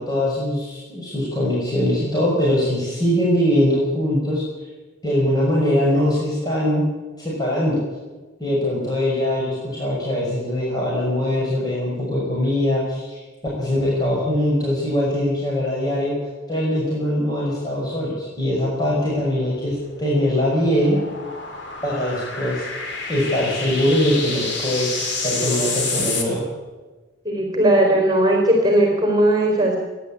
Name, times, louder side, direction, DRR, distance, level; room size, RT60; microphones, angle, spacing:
voice 1, 0.0-4.4 5.0-6.9 7.2-7.8 8.4-13.2 13.6-16.1 16.5-21.0 21.8-22.6 23.1-24.9 25.2-26.4, left 1 dB, 20° left, -5 dB, 6.0 m, -22 dB
sound 1, 18.8-26.2, left 3 dB, 65° left, 3.9 m, -29 dB
voice 2, 27.2-29.8, right 1 dB, 20° right, 1 dB, 4.1 m, -17 dB
29.0 x 11.0 x 8.7 m, 1.2 s
head